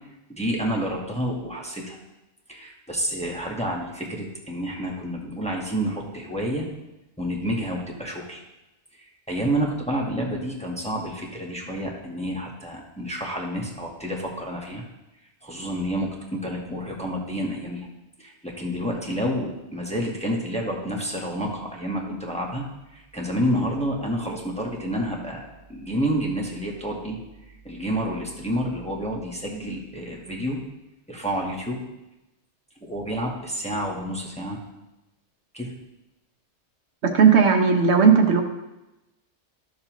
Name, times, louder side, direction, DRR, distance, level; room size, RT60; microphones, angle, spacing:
voice 1, 0.3-2.0 2.5-6.7 7.2-8.4 8.9-14.8 15.4-17.9 18.2-22.6 22.9-30.6 31.1-31.8 32.8-34.6 35.5-35.7, equal, 5° left, -2 dB, 1.1 m, -29 dB
voice 2, 37.0-38.4, right 6 dB, 70° right, 4 dB, 1.1 m, -16 dB
12.5 x 6.6 x 3.0 m, 0.97 s
omnidirectional pair, 1.2 m